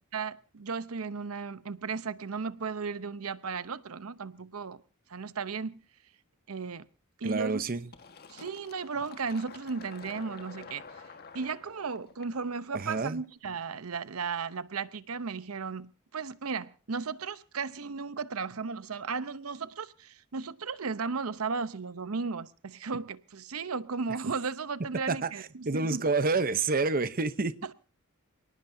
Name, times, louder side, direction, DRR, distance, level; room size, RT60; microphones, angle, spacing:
voice 1, 0.1-4.8 5.1-5.8 6.5-6.8 7.2-7.6 8.3-10.8 11.3-26.1 27.6-27.7, right 5 dB, 85° right, 0.8 m, -35 dB
voice 2, 7.2-7.8 12.7-13.2 25.1-25.3 25.7-27.5, right 3 dB, 45° right, 0.8 m, -28 dB
Fill (with liquid), 7.9-13.3, left 5 dB, 50° left, 1.5 m, -49 dB
27.5 x 18.5 x 2.7 m
head